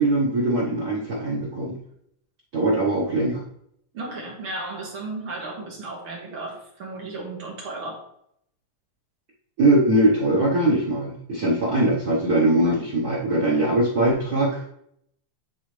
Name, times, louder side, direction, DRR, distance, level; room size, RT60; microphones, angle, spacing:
voice 1, 0.0-1.8 2.5-3.4 9.6-14.6, right 1 dB, 80° right, -5 dB, 0.8 m, -21 dB
voice 2, 3.9-8.0, right 2 dB, 55° right, -2 dB, 1.9 m, -34 dB
10.5 x 3.7 x 3.2 m, 0.71 s
omnidirectional pair, 3.3 m